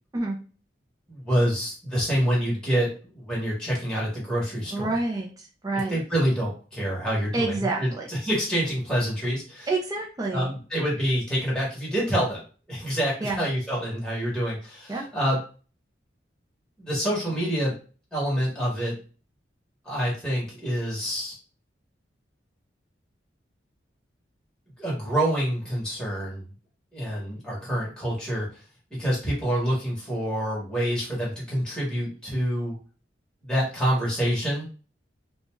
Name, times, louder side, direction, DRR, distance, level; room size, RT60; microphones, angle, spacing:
voice 1, 1.1-4.9 5.7-9.7 10.3-12.4 12.7-15.4 16.8-17.7 18.1-19.0 19.8-21.4 24.8-26.5 26.9-28.6 28.9-32.8 33.4-34.7, equal, 5° left, -6 dB, 0.9 m, -27 dB
voice 2, 4.7-6.0 7.3-8.1 9.7-10.5 13.2-13.4 14.9-15.1, right 2 dB, 20° right, -1 dB, 0.4 m, -28 dB
2.4 x 2.2 x 3.0 m, 0.37 s
head